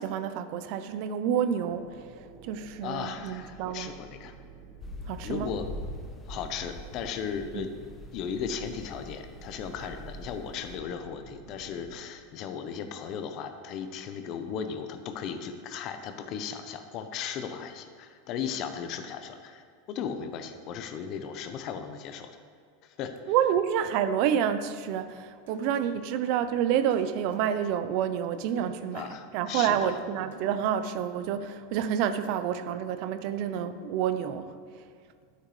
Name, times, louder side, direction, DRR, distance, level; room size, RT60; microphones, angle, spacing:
voice 1, 0.0-3.9 5.1-5.5 7.5-7.6 23.3-29.0 29.3-34.8, right 9 dB, 55° right, 11 dB, 0.6 m, -29 dB
sound 1, 1.6-12.0, right 4 dB, 10° right, 1.8 m, -51 dB
voice 2, 2.8-4.3 5.2-5.7 6.3-7.7 8.1-22.3 22.8-23.1 28.9-30.0, left 7 dB, 45° left, 8 dB, 0.9 m, -36 dB
sound 2, 4.8-10.8, left 1 dB, 20° left, 1.1 m, -43 dB
sound 3, 25.1-25.2 25.5-25.8 26.9-27.4 28.5-29.1 29.7-30.0 30.3-30.7 32.2-32.4, right 3 dB, 80° right, 1.6 m, -52 dB
11.0 x 10.0 x 3.3 m, 2.1 s
supercardioid pair, 130°, 0 cm